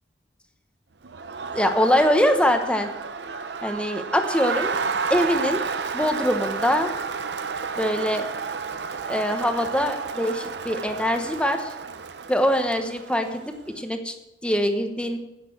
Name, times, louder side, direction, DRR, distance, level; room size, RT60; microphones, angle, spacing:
Crowd, 1.0-13.6, right 5 dB, 70° right, 0.7 m, -31 dB
voice 1, 1.5-2.9 3.6-4.7 5.1-5.6 5.9-6.9 7.8-8.3 9.1-11.7 12.3-14.1 14.4-15.2, equal, 5° left, 6 dB, 1.0 m, -23 dB
10.0 x 8.5 x 6.5 m, 0.90 s
head